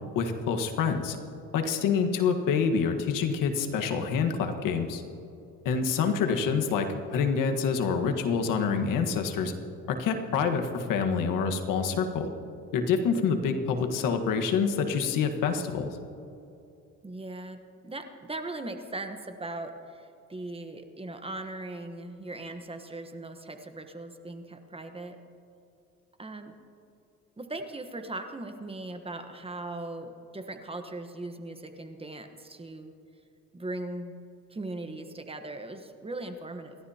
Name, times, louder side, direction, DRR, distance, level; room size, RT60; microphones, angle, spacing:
voice 1, 0.1-1.2 1.5-5.0 5.6-9.5 9.9-12.3 12.7-15.9, left 6 dB, 80° left, 5 dB, 1.5 m, -27 dB
voice 2, 17.0-25.2 26.2-26.5 27.4-32.9 33.5-34.2 34.5-36.8, right 2 dB, 20° right, 7 dB, 1.1 m, -39 dB
28.5 x 12.5 x 2.9 m, 2.7 s
cardioid pair, 100°, 32 cm